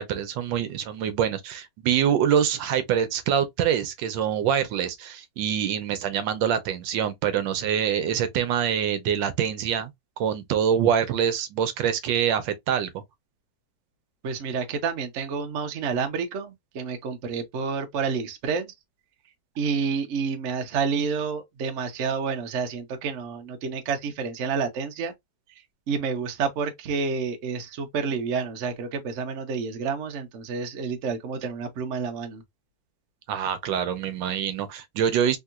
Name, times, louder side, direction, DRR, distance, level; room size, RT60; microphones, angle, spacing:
voice 1, 0.0-9.9 10.2-13.0 33.3-35.4, right 8 dB, 80° right, 1.3 m, -25 dB
voice 2, 14.2-18.7 19.6-25.1 25.9-32.4, right 5 dB, 60° right, 0.8 m, -29 dB
3.6 x 2.7 x 2.3 m
omnidirectional pair, 2.0 m